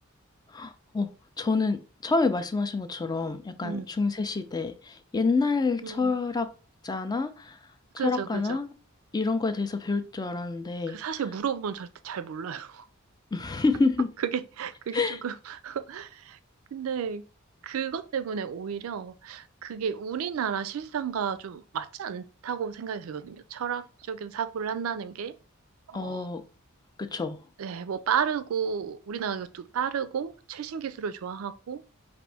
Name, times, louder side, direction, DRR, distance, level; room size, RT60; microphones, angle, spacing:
voice 1, 0.5-1.1 1.4-6.5 6.8-7.6 7.9-8.7 9.1-11.0 13.3-14.1 14.9-15.2 25.9-26.4 27.0-27.4, left 3 dB, 20° left, 0.4 m, -28 dB
voice 2, 5.8-6.1 8.0-8.6 10.9-12.8 14.2-16.4 16.7-17.2 17.6-25.4 25.9-26.3 27.6-31.8, right 7 dB, 75° right, 0.4 m, -32 dB
5.0 x 2.5 x 3.4 m
head